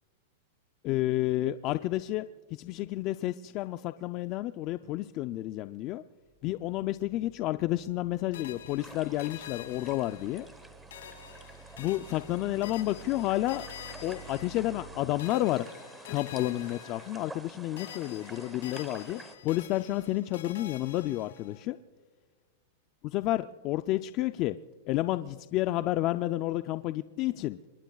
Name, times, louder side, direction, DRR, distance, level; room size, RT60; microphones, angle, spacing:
voice 1, 0.8-2.2 2.5-6.0 6.4-10.5 11.8-13.6 14.0-15.7 16.1-21.8 23.0-24.6 24.9-27.6, left 16 dB, 35° left, 11 dB, 0.4 m, -30 dB
sound 1, 6.2-14.9, right 4 dB, 40° right, 5.5 m, -53 dB
sound 2, 8.3-10.6 10.9-14.9 15.2-17.5 17.8-21.6, left 10 dB, 85° left, 4.4 m, -48 dB
sound 3, 8.8-19.4, right 2 dB, 5° right, 1.1 m, -49 dB
27.0 x 22.5 x 2.3 m, 1.5 s
supercardioid pair, 155°, 0 cm